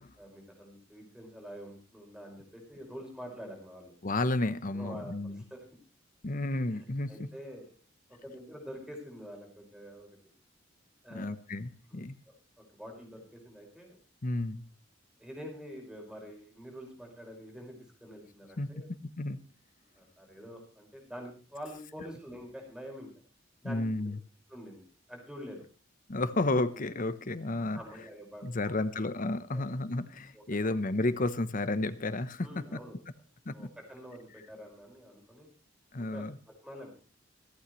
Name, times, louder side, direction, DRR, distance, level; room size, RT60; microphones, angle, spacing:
voice 1, 0.2-3.9 4.7-5.6 6.7-7.7 8.2-10.1 11.0-11.3 11.9-12.1 12.6-14.0 15.2-18.9 20.0-23.1 23.6-24.1 24.5-25.6 27.7-28.8 29.5-29.7 30.3-30.8 32.4-33.0 33.5-35.5 36.0-36.9, equal, 5° right, 1 dB, 5.4 m, -46 dB
voice 2, 4.0-5.4 6.2-7.1 11.1-12.2 14.2-14.6 18.6-18.7 19.2-19.4 23.6-24.2 26.1-27.8 28.4-32.5 32.7-32.8 33.5-33.7 35.9-36.4, left 2 dB, 45° left, 12 dB, 1.0 m, -32 dB
26.0 x 8.8 x 3.2 m, 0.36 s
head